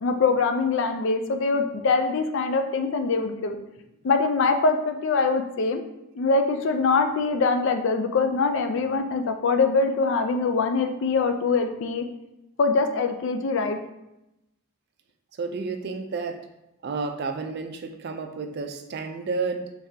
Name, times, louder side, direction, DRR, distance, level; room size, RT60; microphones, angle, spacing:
voice 1, 0.0-3.6 4.0-5.8 6.2-12.0 12.6-13.8, left 4 dB, 60° left, 6 dB, 0.4 m, -23 dB
voice 2, 15.3-16.5 16.8-19.7, right 4 dB, 50° right, 6 dB, 0.4 m, -31 dB
3.6 x 3.2 x 2.7 m, 0.90 s
head